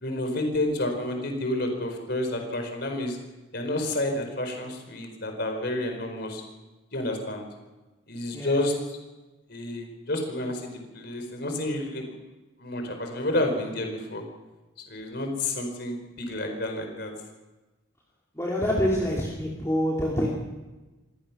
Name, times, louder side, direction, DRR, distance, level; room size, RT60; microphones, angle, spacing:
voice 1, 0.0-3.2 3.5-6.4 6.9-7.5 8.1-9.0 9.5-12.0 12.6-14.2 14.8-17.1, left 1 dB, 50° left, 4 dB, 4.5 m, -30 dB
voice 2, 18.3-20.3, equal, 15° left, -4 dB, 2.8 m, -26 dB
24.0 x 18.0 x 6.1 m, 1.1 s
head